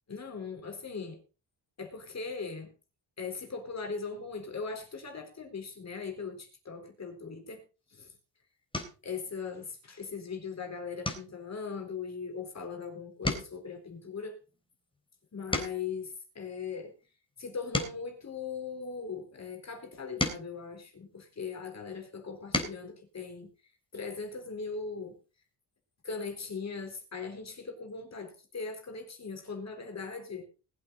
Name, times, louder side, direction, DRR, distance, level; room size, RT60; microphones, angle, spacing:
voice 1, 0.1-1.2 1.8-2.7 3.2-7.6 7.9-8.1 9.0-14.4 15.3-16.9 17.4-23.5 23.9-25.2 26.0-30.4, left 5 dB, 35° left, 4 dB, 4.2 m, -39 dB
sound 1, 7.9-8.1 8.7-9.1 9.6-10.0 10.3-10.5 11.0-12.8 13.1-16.0 16.6-19.1 19.8-21.6 22.2-22.9 24.3-24.4 24.7-24.9, left 1 dB, 10° left, 3.7 m, -38 dB
20.5 x 8.5 x 4.0 m, 0.32 s
cardioid pair, 100°, 43 cm